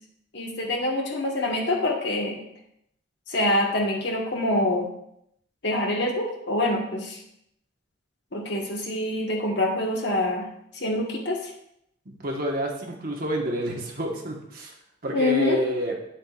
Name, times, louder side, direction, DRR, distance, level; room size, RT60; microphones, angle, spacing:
voice 1, 0.3-2.4 3.3-4.9 5.6-7.2 8.3-10.5 10.7-11.4 15.1-15.6, left 1 dB, 60° left, 0 dB, 1.4 m, -25 dB
voice 2, 12.0-14.7 15.0-15.9, equal, 50° right, 0 dB, 1.3 m, -29 dB
9.0 x 7.4 x 2.4 m, 0.76 s
head